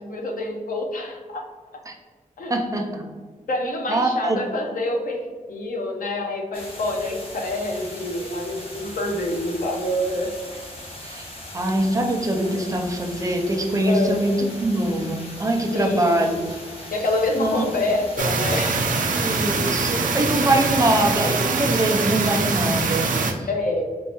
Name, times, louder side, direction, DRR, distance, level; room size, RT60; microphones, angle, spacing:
voice 1, 0.0-1.4 2.4-2.5 3.5-10.3 13.8-14.2 15.7-16.3 16.9-19.1 23.5-23.8, left 1 dB, 85° left, 1 dB, 0.7 m, -26 dB
voice 2, 2.5-3.0 3.9-4.4 11.0-11.3 11.5-16.6 17.4-17.6 19.1-23.5, right 1 dB, 25° right, 2 dB, 0.4 m, -23 dB
sound 1, 6.5-19.0, left 1 dB, 45° left, 0.9 m, -39 dB
sound 2, 18.2-23.3, right 4 dB, 75° right, 0.5 m, -23 dB
4.5 x 3.1 x 2.9 m, 1.5 s
wide cardioid pair, 170°, 14 cm